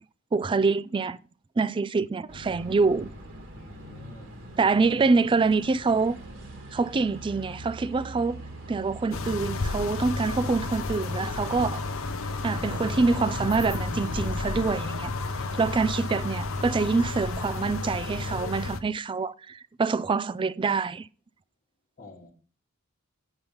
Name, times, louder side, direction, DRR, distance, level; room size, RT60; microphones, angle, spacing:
voice 1, 0.3-1.2 1.6-3.1 4.6-6.2 6.7-8.4 8.7-11.8 12.4-15.1 15.5-21.1, right 4 dB, 25° right, 0.3 m, -25 dB
sound 1, 2.3-18.4, equal, 60° right, 1.9 m, -42 dB
voice 2, 3.5-4.4 22.0-22.3, left 1 dB, 40° left, 1.4 m, -50 dB
sound 2, 9.1-18.8, left 3 dB, 65° left, 0.8 m, -32 dB
7.9 x 6.9 x 5.5 m
head